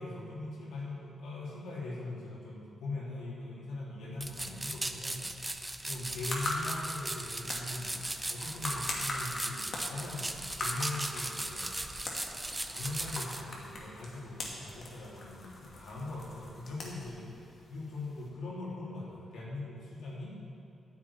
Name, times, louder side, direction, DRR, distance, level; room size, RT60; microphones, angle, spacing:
voice 1, 0.0-5.3 5.8-7.9 8.3-11.8 12.7-17.3 17.7-20.4, left 2 dB, 85° left, -6 dB, 3.2 m, -41 dB
sound 1, 4.2-13.4, right 1 dB, 15° right, 0.6 m, -38 dB
sound 2, 5.8-18.3, left 1 dB, 55° left, 2.3 m, -42 dB
9.6 x 7.3 x 8.6 m, 2.6 s
cardioid pair, 100°, 0 cm